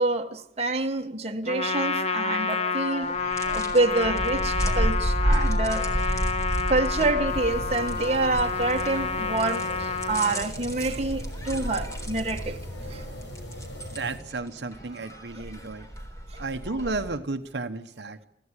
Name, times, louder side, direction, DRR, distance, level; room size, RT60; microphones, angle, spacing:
voice 1, 0.0-3.2 3.4-6.2 6.7-12.6 12.9-13.0 16.3-16.4, right 2 dB, 35° right, 1.5 m, -27 dB
Trumpet, 1.5-10.5, left 5 dB, 35° left, 1.1 m, -29 dB
sound 1, 3.0-17.2, equal, 20° left, 3.7 m, -31 dB
sound 2, 7.3-14.2, equal, 90° left, 5.9 m, -40 dB
voice 2, 13.9-15.9 16.4-18.2, right 3 dB, 70° right, 1.1 m, -33 dB
24.5 x 15.5 x 9.8 m
head